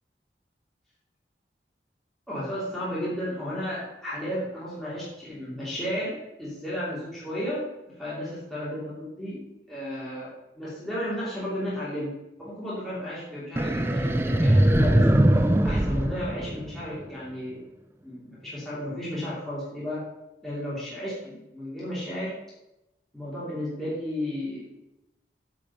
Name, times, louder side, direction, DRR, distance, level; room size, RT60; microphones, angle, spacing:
voice 1, 2.3-7.7 8.0-9.4 9.7-12.1 12.4-15.2 15.6-17.6 18.0-20.0 20.4-22.3 23.1-24.6, equal, ahead, -10 dB, 2.9 m, -33 dB
sound 1, 13.6-17.0, right 1 dB, 15° right, 0.4 m, -21 dB
8.9 x 5.0 x 5.5 m, 0.92 s
head